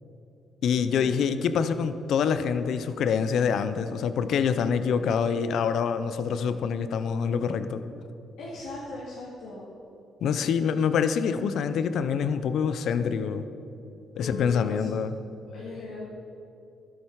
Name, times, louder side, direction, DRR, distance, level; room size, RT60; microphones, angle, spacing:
voice 1, 0.6-7.8 10.2-13.5 14.2-15.2, left 6 dB, 70° left, 11 dB, 0.7 m, -26 dB
voice 2, 8.4-9.7 14.2-14.9 15.5-16.1, left 2 dB, 85° left, -6 dB, 2.3 m, -38 dB
12.5 x 11.0 x 4.8 m, 2.7 s
cardioid pair, 90°, 0 cm